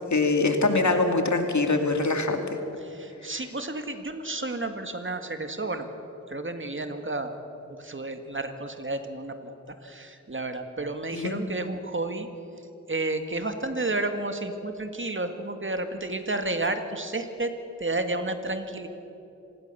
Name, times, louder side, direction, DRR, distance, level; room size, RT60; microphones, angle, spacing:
voice 1, 0.1-2.4 11.1-11.4, left 3 dB, 70° left, 5 dB, 2.5 m, -23 dB
voice 2, 2.8-5.9 6.3-7.3 7.7-9.5 9.8-12.3 12.9-17.5 17.8-18.9, right 2 dB, 40° right, 7 dB, 2.0 m, -31 dB
25.5 x 19.0 x 6.9 m, 2.9 s
wide cardioid pair, 50°, 30 cm